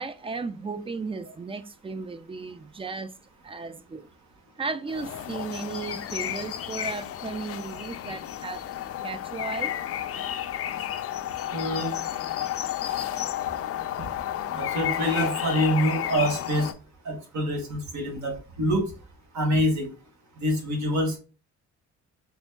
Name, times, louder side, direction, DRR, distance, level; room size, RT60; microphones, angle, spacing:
voice 1, 0.0-3.1 3.4-4.1 4.6-8.6 9.0-9.8, right 4 dB, 20° right, 0.3 m, -35 dB
sound 1, 4.9-16.7, left 11 dB, 50° left, 0.4 m, -32 dB
voice 2, 11.5-11.9 14.5-16.7 17.0-18.9 19.3-19.9 20.4-21.2, equal, 70° right, 1.4 m, -26 dB
4.2 x 3.5 x 2.2 m
cardioid pair, 90°, 30 cm